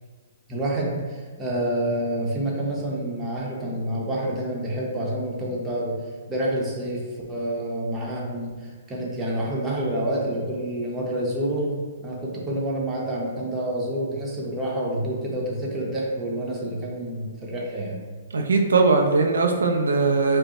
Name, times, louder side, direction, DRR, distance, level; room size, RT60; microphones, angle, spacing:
voice 1, 0.5-6.0 6.3-7.0 7.3-11.7 12.0-18.0, right 1 dB, 15° right, -4 dB, 0.9 m, -28 dB
voice 2, 18.3-20.4, right 3 dB, 85° right, 3 dB, 0.4 m, -20 dB
5.1 x 2.1 x 2.9 m, 1.5 s
hypercardioid pair, 135°, 0 cm